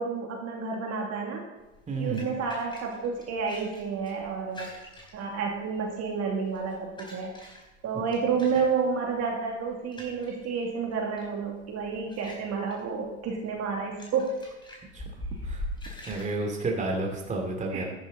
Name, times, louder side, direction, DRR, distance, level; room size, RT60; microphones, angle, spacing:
voice 1, 0.0-1.4 2.0-4.7 5.1-7.3 7.8-14.4 17.7-17.8, right 5 dB, 35° right, 0 dB, 2.6 m, -30 dB
sound 1, 1.6-16.3, left 1 dB, 10° left, 4.2 m, -44 dB
voice 2, 1.9-2.3 14.9-15.0 15.4-15.6 16.1-17.8, right 3 dB, 15° right, 1 dB, 2.7 m, -30 dB
13.0 x 11.0 x 4.1 m, 1.1 s
supercardioid pair, 115°, 41 cm